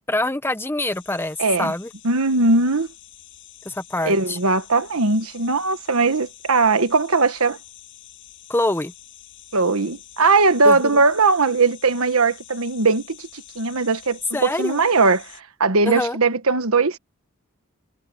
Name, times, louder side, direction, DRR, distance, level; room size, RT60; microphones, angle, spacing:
voice 1, 0.1-1.9 3.7-4.4 8.5-8.9 10.6-11.0 14.3-14.8 15.9-16.2, left 2 dB, 10° left, 0.8 m, -25 dB
sound 1, 0.9-15.4, left 13 dB, 60° left, 7.7 m, -46 dB
voice 2, 1.4-1.7 2.0-2.9 4.0-7.6 9.5-13.3 13.5-15.3 15.6-17.0, right 3 dB, 70° right, 1.4 m, -19 dB
head